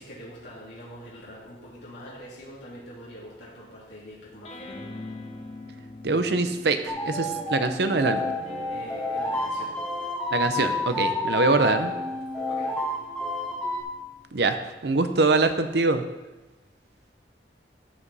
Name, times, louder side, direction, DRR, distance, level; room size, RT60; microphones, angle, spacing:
voice 1, 0.0-4.7 8.7-9.7 12.4-12.8, equal, 85° left, -8 dB, 2.9 m, -44 dB
sound 1, 4.4-7.8 8.3-15.1, left 2 dB, 35° left, 1.0 m, -45 dB
voice 2, 6.0-8.4 10.3-11.9 14.3-14.6 14.8-16.0, right 3 dB, 70° right, 9 dB, 0.7 m, -23 dB
sound 2, 6.9-13.8, left 2 dB, 5° left, 1.2 m, -29 dB
14.0 x 5.1 x 4.1 m, 1.1 s
head